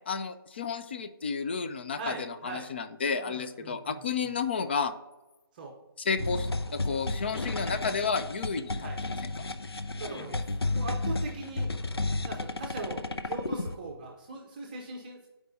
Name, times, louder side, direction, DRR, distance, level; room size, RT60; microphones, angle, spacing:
voice 1, 0.1-4.9 6.0-9.3, left 5 dB, 25° left, 8 dB, 0.4 m, -32 dB
voice 2, 1.9-2.7 3.2-4.3 5.5-5.8 8.8-9.0 10.0-10.4 10.7-11.7 12.2-15.3, right 3 dB, 20° right, 0 dB, 0.7 m, -40 dB
sound 1, 6.2-13.7, left 2 dB, 90° left, 0.6 m, -32 dB
11.0 x 4.7 x 2.7 m, 1.1 s
figure-of-eight pair, 155°, 13 cm